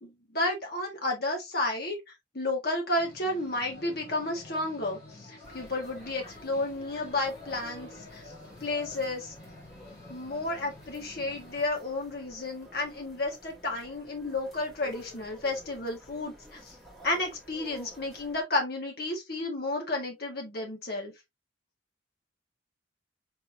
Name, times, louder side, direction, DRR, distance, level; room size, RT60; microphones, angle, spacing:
voice 1, 0.0-2.0 2.3-5.0 5.3-8.2 8.6-9.3 10.1-16.7 17.0-21.1, left 2 dB, 50° left, 1.6 m, -32 dB
sound 1, 3.0-11.7, left 2 dB, 30° left, 2.7 m, -49 dB
sound 2, 5.4-18.4, left 1 dB, ahead, 2.1 m, -52 dB
4.7 x 3.9 x 2.7 m
head